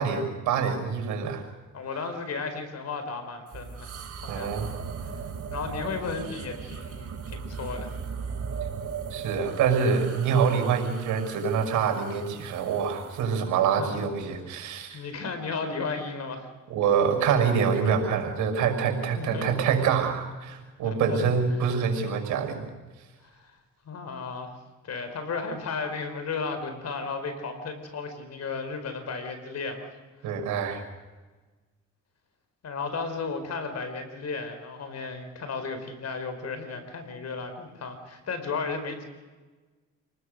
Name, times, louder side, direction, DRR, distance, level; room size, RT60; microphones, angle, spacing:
voice 1, 0.0-1.4 4.3-4.7 9.1-15.0 16.7-22.7 30.2-30.8, right 6 dB, 90° right, 4 dB, 6.0 m, -26 dB
voice 2, 1.7-4.0 4.2-4.5 5.5-7.9 13.8-13.9 14.9-16.5 19.2-19.5 20.8-21.7 23.2-23.5 23.8-24.5 24.8-29.9 32.6-39.0, left 4 dB, 60° left, 8 dB, 4.9 m, -34 dB
sound 1, 3.5-13.3, right 6 dB, 55° right, 3.9 m, -38 dB
28.0 x 20.0 x 6.6 m, 1.3 s
cardioid pair, 90°, 30 cm